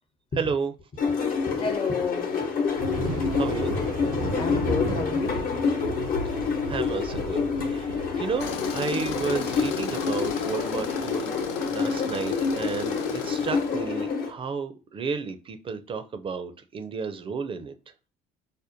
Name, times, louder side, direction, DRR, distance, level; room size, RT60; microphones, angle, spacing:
voice 1, 0.4-0.7 3.4-3.8 6.2-11.4 11.7-17.8, right 5 dB, 35° right, 0.4 m, -32 dB
sound 1, 1.0-14.3, left 5 dB, 60° left, 1.0 m, -28 dB
voice 2, 1.5-3.4 4.4-5.5, left 4 dB, 35° left, 0.7 m, -32 dB
Thunder, 2.8-13.9, right 1 dB, 90° right, 0.8 m, -36 dB
Tools, 8.4-13.8, left 7 dB, 80° left, 0.5 m, -35 dB
5.0 x 2.1 x 2.6 m
hypercardioid pair, 70°, 16 cm